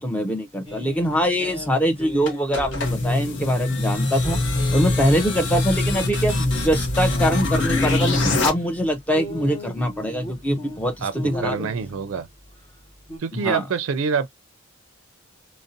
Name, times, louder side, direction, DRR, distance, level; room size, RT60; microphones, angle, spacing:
voice 1, 0.0-4.4 4.7-11.7 13.3-13.6, equal, 5° left, 0.5 m, -23 dB
sound 1, 0.6-13.2, left 1 dB, 25° left, 0.8 m, -39 dB
sound 2, 2.3-8.5, left 2 dB, 60° left, 0.7 m, -23 dB
voice 2, 11.0-12.3 13.2-14.3, right 6 dB, 80° right, 0.4 m, -26 dB
2.5 x 2.1 x 2.5 m
head